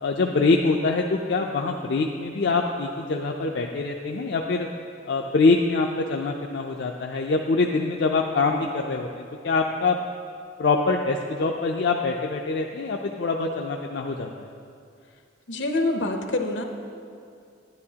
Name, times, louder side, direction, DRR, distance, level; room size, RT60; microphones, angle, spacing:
voice 1, 0.0-4.7 5.1-10.0 10.6-14.3, left 3 dB, 65° left, 1 dB, 0.4 m, -24 dB
voice 2, 15.5-16.6, left 2 dB, 80° left, 4 dB, 0.8 m, -26 dB
10.5 x 10.5 x 2.8 m, 2.4 s
head